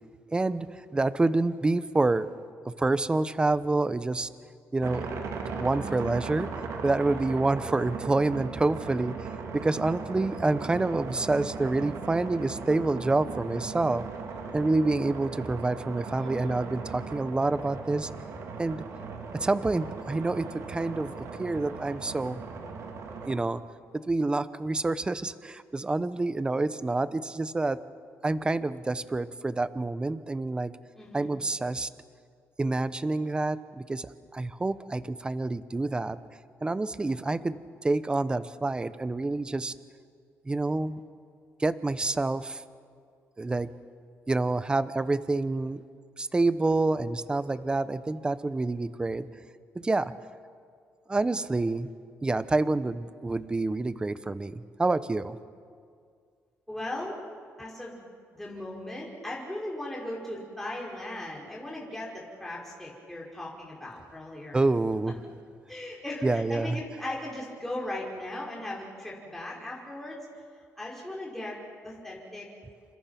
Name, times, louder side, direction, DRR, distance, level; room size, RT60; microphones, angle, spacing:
voice 1, 0.3-2.3 2.6-4.3 4.7-5.0 5.6-6.5 6.8-9.3 9.5-14.0 14.5-18.1 18.6-18.9 19.3-22.4 23.2-23.6 23.9-27.8 28.2-30.7 31.1-31.9 32.6-34.1 34.3-36.2 36.6-39.7 40.5-41.0 41.6-42.6 43.4-43.7 44.3-45.8 46.2-49.3 49.7-50.1 51.1-51.9 52.2-55.4 64.5-65.2 66.2-66.8, right 2 dB, 15° right, 14 dB, 0.9 m, -27 dB
sound 1, 4.8-23.4, right 5 dB, 70° right, 3.1 m, -38 dB
voice 2, 16.2-16.6 31.0-31.3 36.9-37.2 56.7-57.2 57.6-58.0 58.3-64.6 65.7-70.2 70.8-71.6 71.8-72.5, left 1 dB, 5° left, -4 dB, 5.6 m, -38 dB
29.0 x 26.5 x 6.0 m, 2.2 s
cardioid pair, 115°, 5 cm